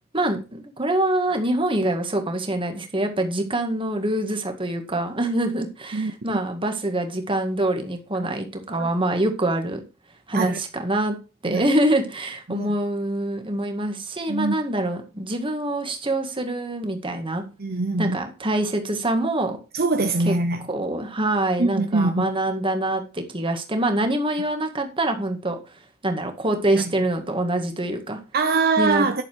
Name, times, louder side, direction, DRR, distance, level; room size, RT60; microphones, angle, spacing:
voice 1, 0.1-9.8 10.3-11.2 11.4-17.4 18.0-19.6 20.3-20.4 20.7-28.2 28.8-29.1, right 1 dB, 25° right, 1.9 m, -25 dB
voice 2, 5.9-6.4 8.8-8.9 10.3-10.6 11.5-11.6 12.5-12.7 14.3-14.5 17.6-18.2 19.7-20.6 21.6-22.2 26.7-26.8 28.3-29.2, right 3 dB, 45° right, 0.8 m, -23 dB
11.0 x 7.1 x 4.6 m
head